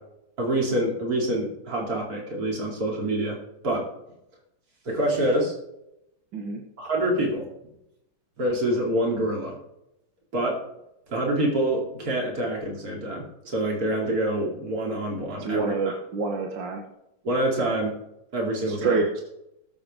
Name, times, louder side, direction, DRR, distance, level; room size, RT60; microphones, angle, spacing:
voice 1, 0.4-3.4 3.6-3.8 4.8-5.5 6.8-7.5 8.4-9.6 10.3-10.6 11.1-16.0 17.2-17.9 18.3-19.0, right 1 dB, 45° right, -2 dB, 3.2 m, -26 dB
voice 2, 15.4-16.8 18.7-19.2, right 4 dB, 65° right, 1 dB, 2.0 m, -27 dB
20.5 x 6.9 x 3.7 m, 0.84 s
omnidirectional pair, 2.2 m